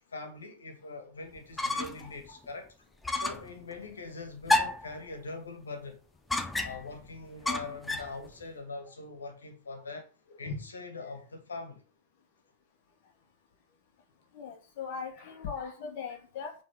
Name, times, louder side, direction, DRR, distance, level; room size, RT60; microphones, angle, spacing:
voice 1, 0.1-2.7 3.1-6.0 6.6-10.1 10.4-11.8, left 3 dB, 70° left, 2.4 m, -42 dB
sound 1, 1.4-2.1 2.4-2.5 3.0-3.5 4.5-4.9 6.3-6.9 7.5-8.2, left 2 dB, 10° left, 1.0 m, -30 dB
voice 2, 14.3-16.5, left 6 dB, 50° left, 2.4 m, -38 dB
9.3 x 4.5 x 6.3 m
figure-of-eight pair, 90°, 0 cm